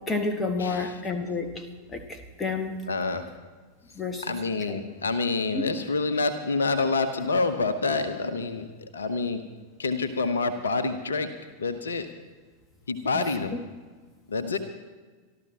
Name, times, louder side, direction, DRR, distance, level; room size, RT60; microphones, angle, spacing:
voice 1, 0.1-1.6 1.9-2.8 4.0-4.2 4.7-4.8 5.5-5.6, left 3 dB, 15° left, 5 dB, 1.8 m, -30 dB
voice 2, 0.6-1.0 2.9-3.3 4.2-9.4 9.8-11.3 11.6-12.1 12.9-13.5 14.3-14.6, left 3 dB, 70° left, 10 dB, 1.0 m, -27 dB
25.5 x 13.0 x 2.9 m, 1.4 s
figure-of-eight pair, 90°, 0 cm